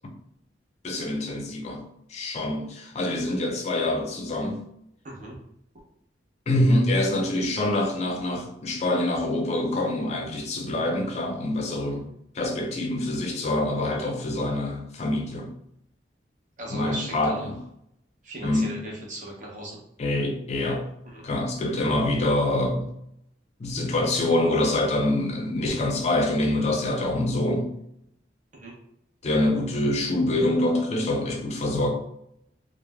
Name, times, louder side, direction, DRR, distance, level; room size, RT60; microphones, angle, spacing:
voice 1, 0.8-1.8 2.1-4.6 6.5-12.1 12.3-15.5 16.7-17.6 18.4-18.7 20.0-20.9 21.2-22.9 23.6-27.7 29.2-31.9, left 1 dB, 35° left, 0.4 m, -25 dB
voice 2, 5.0-5.4 16.6-17.5 18.2-19.8 21.0-21.2 28.5-28.7, right 1 dB, 45° right, 0.7 m, -37 dB
3.1 x 2.0 x 2.2 m
head